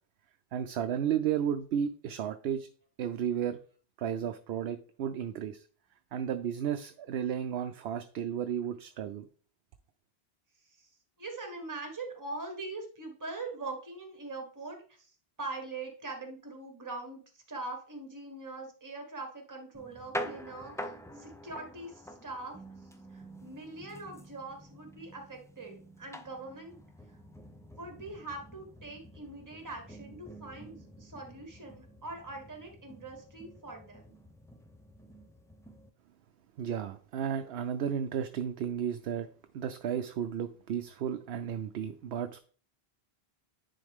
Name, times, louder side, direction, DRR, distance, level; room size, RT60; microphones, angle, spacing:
voice 1, 0.5-2.7 3.0-3.6 4.0-5.6 6.1-9.3 36.6-39.3 39.5-42.4, right 9 dB, 80° right, 8 dB, 0.8 m, -33 dB
voice 2, 11.2-22.6 23.1-26.8 27.8-34.2, right 2 dB, 20° right, 3 dB, 1.3 m, -42 dB
sound 1, 19.7-35.9, equal, 5° left, 0.4 m, -47 dB
9.9 x 3.8 x 3.5 m, 0.41 s
omnidirectional pair, 1.0 m